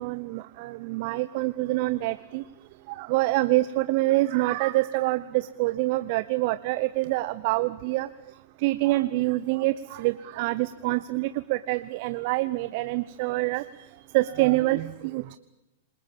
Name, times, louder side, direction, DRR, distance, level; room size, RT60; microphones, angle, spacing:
voice 1, 0.0-2.4 2.9-8.1 8.6-13.6 14.1-15.4, right 19 dB, 50° right, 14 dB, 0.8 m, -26 dB
27.5 x 21.0 x 7.3 m, 1.0 s
hypercardioid pair, 105°, 0 cm